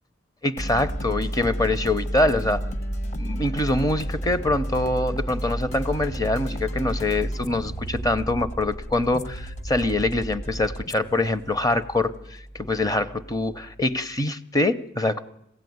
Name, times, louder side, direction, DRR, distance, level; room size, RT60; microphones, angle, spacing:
voice 1, 0.4-2.6 3.2-15.2, left 2 dB, 20° left, 11 dB, 0.8 m, -24 dB
sound 1, 0.6-14.0, right 1 dB, 40° left, 1.2 m, -32 dB
21.5 x 16.0 x 9.4 m, 0.84 s
head